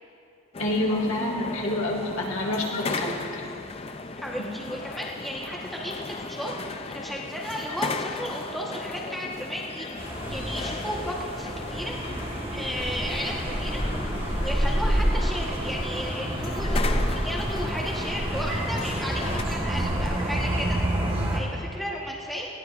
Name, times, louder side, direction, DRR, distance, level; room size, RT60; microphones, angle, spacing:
sound 1, 0.5-19.4, left 3 dB, 30° left, 0.4 m, -36 dB
voice 1, 0.6-3.4, left 1 dB, 70° left, -3 dB, 1.9 m, -27 dB
voice 2, 4.2-11.9 12.5-14.2 14.4-20.8 21.3-22.5, equal, ahead, -4 dB, 1.2 m, -34 dB
sound 2, 10.0-21.4, right 1 dB, 25° right, 1.4 m, -28 dB
20.0 x 16.0 x 2.5 m, 2.7 s
head